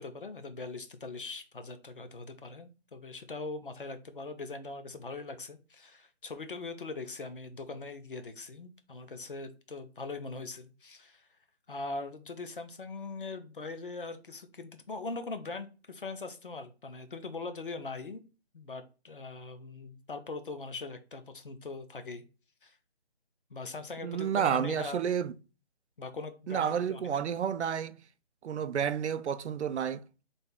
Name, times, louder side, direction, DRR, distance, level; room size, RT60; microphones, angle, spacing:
voice 1, 0.0-11.3 11.7-18.2 18.5-22.2 22.6-22.8 23.5-25.0 26.0-27.2, left 3 dB, 50° left, 0.6 m, -41 dB
voice 2, 24.0-25.3 26.5-28.0 28.4-30.2, right 8 dB, 80° right, 0.5 m, -30 dB
3.4 x 2.6 x 3.7 m
hypercardioid pair, 175°, 34 cm